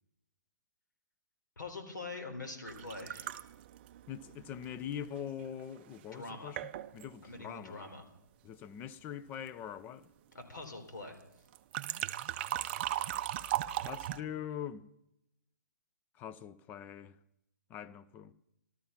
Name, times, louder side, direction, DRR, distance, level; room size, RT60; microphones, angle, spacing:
voice 1, 1.6-3.4 6.1-6.6 7.2-8.0 10.3-11.2, left 3 dB, 75° left, 3.9 m, -44 dB
sound 1, 2.7-5.5 6.2-6.3 6.6-7.1 11.5-14.2, right 13 dB, 35° right, 0.5 m, -38 dB
voice 2, 4.1-7.9 8.4-10.1 12.8-14.9 16.1-17.2 17.7-18.3, left 9 dB, 15° left, 0.5 m, -43 dB
14.5 x 13.0 x 5.7 m
hypercardioid pair, 145°, 10 cm